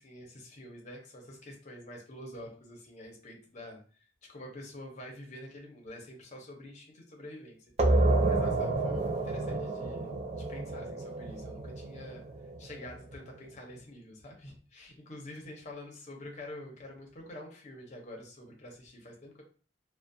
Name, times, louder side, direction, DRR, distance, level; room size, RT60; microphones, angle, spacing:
voice 1, 0.0-7.6 7.9-12.2 12.6-19.4, left 1 dB, 40° left, 0 dB, 0.6 m, -47 dB
sound 1, 7.8-13.1, right 2 dB, 35° right, 0.3 m, -29 dB
2.3 x 2.1 x 2.6 m, 0.40 s
head